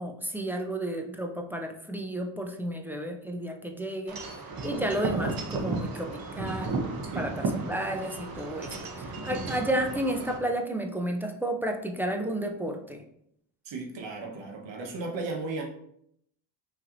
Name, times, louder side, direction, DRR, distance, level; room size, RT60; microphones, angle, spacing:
voice 1, 0.0-4.2 4.6-6.7 7.1-8.7 9.0-13.0, right 1 dB, 5° right, 2 dB, 0.3 m, -32 dB
Wind chime / Wind, 4.1-10.4, right 3 dB, 50° right, 0.9 m, -34 dB
voice 2, 13.6-15.6, right 3 dB, 70° right, 1 dB, 1.2 m, -35 dB
5.7 x 3.2 x 2.5 m, 0.72 s
cardioid pair, 120°, 46 cm